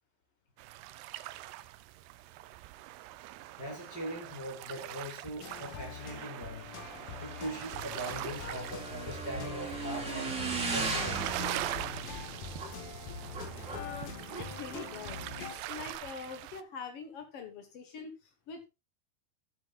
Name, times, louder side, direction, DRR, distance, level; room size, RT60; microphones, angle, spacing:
sound 1, 0.6-16.6, right 15 dB, 85° right, 2.7 m, -43 dB
voice 1, 3.6-6.7 7.2-11.4, equal, 25° left, 3.5 m, -41 dB
sound 2, 5.4-15.5, left 7 dB, 65° left, 1.9 m, -45 dB
Motorcycle / Engine, 6.7-16.0, right 3 dB, 20° right, 3.3 m, -39 dB
voice 2, 13.7-18.7, left 6 dB, 80° left, 1.3 m, -44 dB
14.0 x 8.6 x 2.3 m
omnidirectional pair, 4.7 m